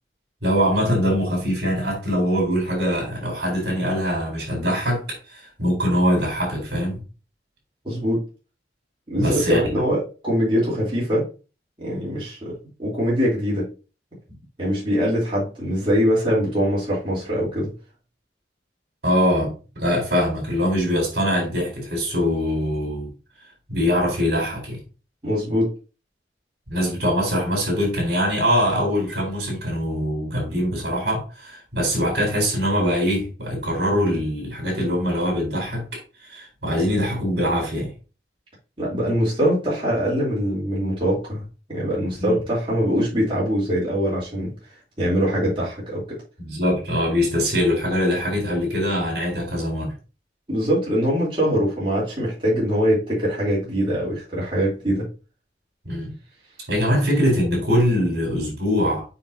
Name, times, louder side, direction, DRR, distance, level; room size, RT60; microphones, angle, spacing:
voice 1, 0.4-7.0 9.2-9.6 19.0-23.1 23.7-24.8 26.7-37.9 42.2-42.4 46.4-49.9 55.9-56.1 56.7-59.0, equal, 65° right, 4.0 m, -23 dB
voice 2, 7.8-8.2 9.1-11.3 11.8-13.7 14.6-17.7 25.2-25.7 38.8-41.4 41.7-44.5 45.0-46.2 50.5-55.1, equal, 30° right, 3.4 m, -23 dB
7.0 x 5.8 x 2.8 m
head